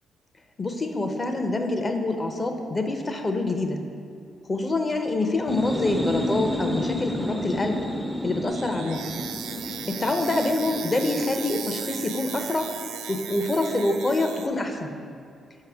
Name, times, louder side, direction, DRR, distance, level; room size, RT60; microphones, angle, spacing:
voice 1, 0.6-3.8 4.5-7.8 8.2-9.1 9.9-12.7 13.1-14.9, left 2 dB, 35° left, 5 dB, 0.7 m, -26 dB
sound 1, 5.3-12.9, left 1 dB, ahead, 0.4 m, -32 dB
sound 2, 8.5-14.5, right 8 dB, 85° right, 0.3 m, -37 dB
6.6 x 5.0 x 3.5 m, 2.4 s
supercardioid pair, 65°, 0 cm